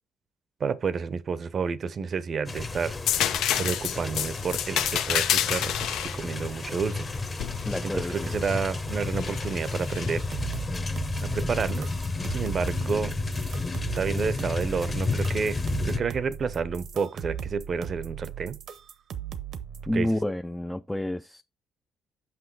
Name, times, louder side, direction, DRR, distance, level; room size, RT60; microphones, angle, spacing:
voice 1, 0.6-7.1 7.8-10.2 11.2-11.9 12.3-13.1 13.9-18.6 19.9-20.1, right 5 dB, 50° right, 0.7 m, -30 dB
sound 1, 2.5-16.0, left 3 dB, 30° left, 0.9 m, -32 dB
sound 2, 3.1-8.7 9.2-10.2 12.2-12.4, left 10 dB, 85° left, 0.6 m, -29 dB
voice 2, 7.7-8.3 19.9-21.4, left 1 dB, 5° left, 0.4 m, -29 dB
sound 3, 10.2-19.9, right 8 dB, 70° right, 0.9 m, -38 dB
6.0 x 5.5 x 4.7 m
cardioid pair, 90°, 0 cm